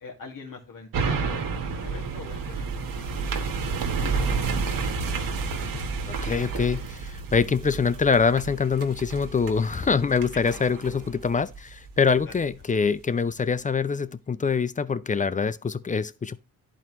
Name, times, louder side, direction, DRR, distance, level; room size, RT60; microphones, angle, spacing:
voice 1, 0.0-3.2 4.0-4.5 6.4-6.6, left 4 dB, 60° left, 2.1 m, -43 dB
sound 1, 0.9-12.4 12.8-12.9, right 4 dB, 60° right, 1.2 m, -30 dB
voice 2, 6.2-16.4, left 5 dB, 20° left, 0.4 m, -24 dB
11.0 x 4.5 x 3.0 m
supercardioid pair, 55°, 38 cm